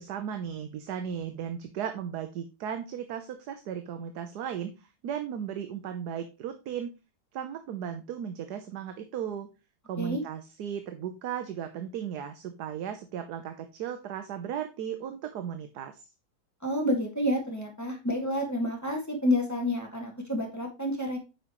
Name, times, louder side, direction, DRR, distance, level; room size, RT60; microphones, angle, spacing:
voice 1, 0.0-6.9 7.3-9.5 9.9-16.1, right 8 dB, 75° right, 8 dB, 1.3 m, -36 dB
voice 2, 16.6-21.2, left 1 dB, 10° left, 0 dB, 2.1 m, -29 dB
8.2 x 5.6 x 3.0 m, 0.28 s
omnidirectional pair, 1.8 m